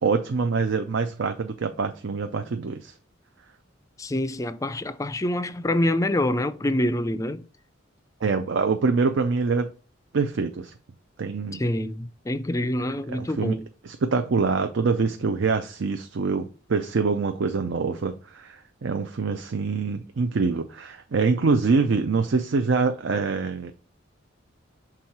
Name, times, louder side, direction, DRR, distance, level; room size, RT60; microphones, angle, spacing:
voice 1, 0.0-2.9 8.2-9.7 10.1-10.7 11.2-11.6 13.1-13.6 13.8-23.7, right 4 dB, 70° right, 0.5 m, -25 dB
voice 2, 4.0-7.4 11.5-13.7, left 1 dB, 15° left, 0.4 m, -26 dB
6.2 x 3.7 x 4.2 m
head